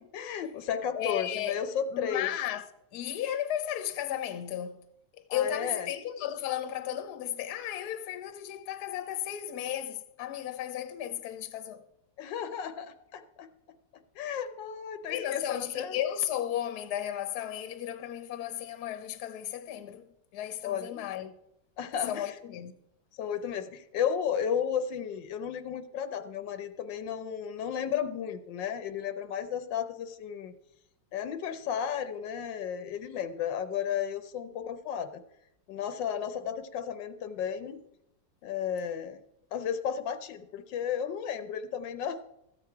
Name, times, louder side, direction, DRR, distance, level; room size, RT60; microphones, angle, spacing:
voice 1, 0.1-2.3 5.3-5.9 12.2-13.5 14.2-16.0 20.6-21.0 21.8-22.3 23.2-30.5 31.1-35.2 35.7-37.8 38.4-39.2 39.5-42.2, left 8 dB, 85° left, 1.4 m, -33 dB
voice 2, 0.9-1.6 1.9-2.6 2.9-4.9 5.3-11.8 15.1-20.1 20.3-21.3 22.1-22.7, left 11 dB, 65° left, 1.3 m, -34 dB
14.0 x 8.1 x 4.6 m
omnidirectional pair, 2.0 m